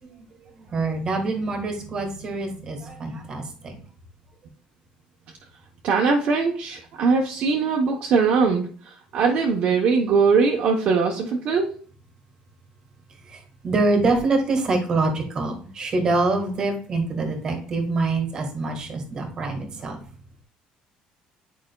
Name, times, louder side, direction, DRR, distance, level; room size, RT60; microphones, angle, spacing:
voice 1, 0.6-3.7 13.3-20.0, right 3 dB, 25° right, 4 dB, 1.5 m, -25 dB
voice 2, 5.8-11.7, right 5 dB, 45° right, 0 dB, 0.8 m, -21 dB
9.0 x 4.9 x 2.2 m, 0.44 s
cardioid pair, 175°, 3 cm